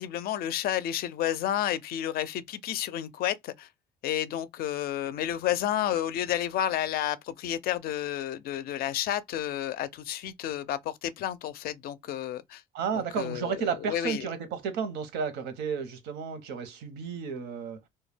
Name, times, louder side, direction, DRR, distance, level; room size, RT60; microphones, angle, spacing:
voice 1, 0.0-3.7 4.0-12.6 12.9-14.2, left 11 dB, 65° left, 0.4 m, -31 dB
voice 2, 12.7-17.8, right 6 dB, 80° right, 0.8 m, -32 dB
2.2 x 2.1 x 3.2 m
cardioid pair, 110°, 17 cm